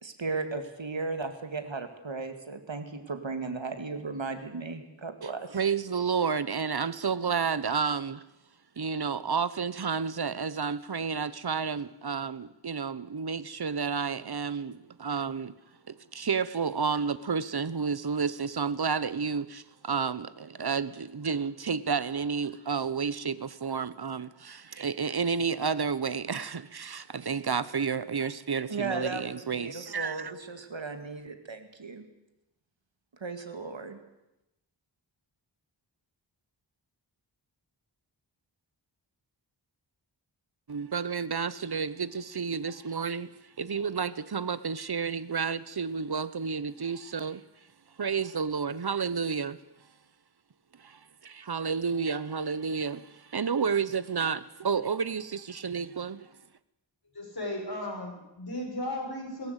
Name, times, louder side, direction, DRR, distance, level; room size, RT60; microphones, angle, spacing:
voice 1, 0.0-5.6 28.7-32.1 33.2-34.0, right 3 dB, 75° right, 2.2 m, -36 dB
voice 2, 5.5-8.2 8.8-15.5 15.9-30.3 40.7-43.3 43.6-47.4 48.0-49.6 50.8-56.3, right 6 dB, 55° right, 1.0 m, -31 dB
voice 3, 57.1-59.5, left 1 dB, 55° left, 7.2 m, -35 dB
21.5 x 17.0 x 8.2 m
wide cardioid pair, 55°, 45 cm